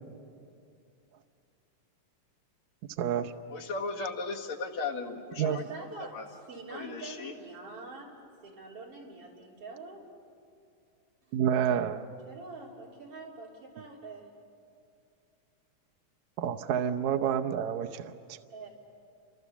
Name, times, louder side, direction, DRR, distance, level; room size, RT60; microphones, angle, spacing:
voice 1, 3.0-3.3 5.4-5.6 11.3-12.1 16.4-18.4, right 9 dB, 70° right, 4 dB, 2.0 m, -29 dB
voice 2, 3.5-5.9 6.1-6.2 6.7-7.3, left 4 dB, 60° left, -1 dB, 2.9 m, -36 dB
voice 3, 5.4-8.2 8.4-10.1 11.2-11.4 12.3-14.4 18.5-18.7, right 3 dB, 45° right, -2 dB, 4.4 m, -45 dB
29.0 x 26.0 x 7.1 m, 2.5 s
omnidirectional pair, 3.7 m